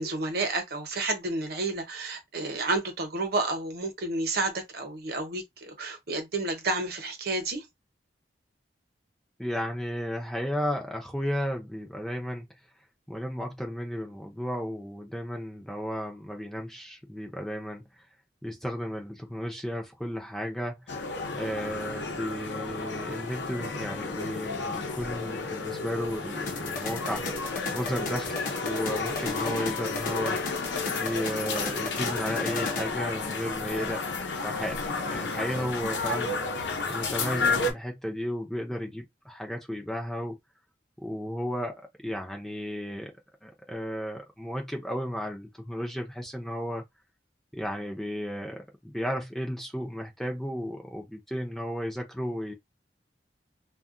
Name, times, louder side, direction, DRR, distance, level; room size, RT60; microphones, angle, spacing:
voice 1, 0.0-7.7, right 2 dB, 60° right, 0.9 m, -30 dB
voice 2, 9.4-12.5 13.1-17.8 18.4-21.0 21.3-27.3 27.7-30.4 31.0-34.0 34.3-36.3 36.9-40.4 41.0-43.1 43.4-46.8 47.5-52.5, equal, ahead, 0.5 m, -34 dB
sound 1, 20.9-37.7, left 3 dB, 85° left, 0.7 m, -32 dB
sound 2, 26.5-32.9, left 3 dB, 50° left, 0.8 m, -36 dB
2.3 x 2.1 x 3.7 m
head